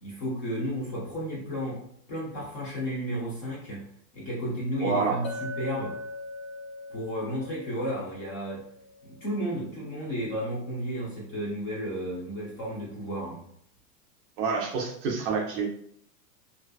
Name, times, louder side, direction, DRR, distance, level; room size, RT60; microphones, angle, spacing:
voice 1, 0.0-1.8 2.1-3.9 4.1-5.9 6.9-8.6 9.0-13.4, equal, 25° left, -6 dB, 0.4 m, -33 dB
voice 2, 4.8-5.2 14.4-15.7, right 5 dB, 35° right, -1 dB, 0.5 m, -27 dB
Chink clink, 5.2-9.7, left 2 dB, 90° left, 0.9 m, -41 dB
2.5 x 2.2 x 2.2 m, 0.69 s
hypercardioid pair, 135°, 48 cm